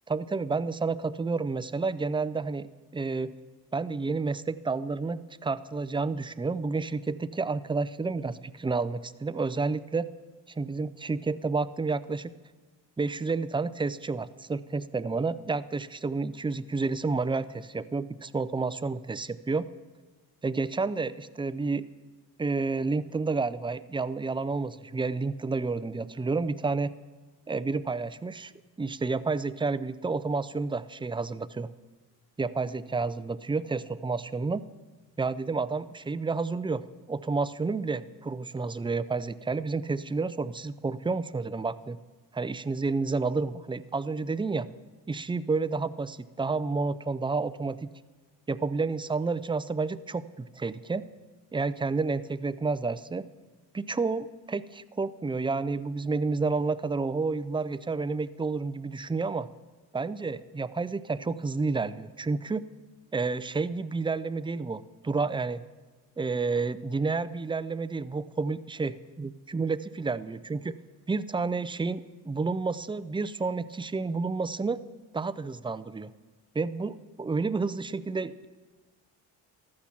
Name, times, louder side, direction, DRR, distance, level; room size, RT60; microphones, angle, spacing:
voice 1, 0.1-3.3 3.7-10.1 10.6-12.3 13.0-19.7 20.4-21.9 22.4-26.9 27.5-28.5 28.8-31.7 32.4-34.6 35.2-42.0 42.3-44.7 45.1-47.9 48.5-51.1 51.5-53.3 53.7-59.5 59.9-62.6 63.1-65.6 66.2-68.9 69.2-70.8 71.1-74.8 75.1-76.1 76.5-78.5, right 4 dB, 10° right, 15 dB, 0.5 m, -30 dB
15.0 x 12.0 x 5.9 m, 1.3 s
supercardioid pair, 60°, 43 cm